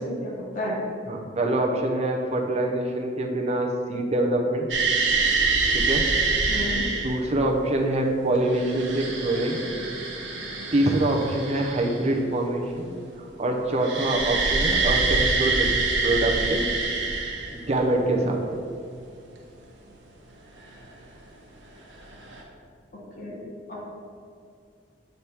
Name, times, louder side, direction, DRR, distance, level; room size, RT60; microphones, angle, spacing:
voice 1, 0.0-0.8 6.5-6.8 23.2-23.4 23.7-23.8, equal, 50° left, -5 dB, 1.3 m, -32 dB
voice 2, 1.1-4.7 5.7-6.0 7.0-9.6 10.7-12.9 13.4-15.7 16.0-16.7 17.5-18.4, right 1 dB, 35° right, 1 dB, 0.7 m, -25 dB
sound 1, 4.7-7.2 8.3-12.2 13.8-17.8 20.8-20.9 22.0-22.4, right 4 dB, 85° right, 1.1 m, -25 dB
7.9 x 3.5 x 4.3 m, 2.4 s
head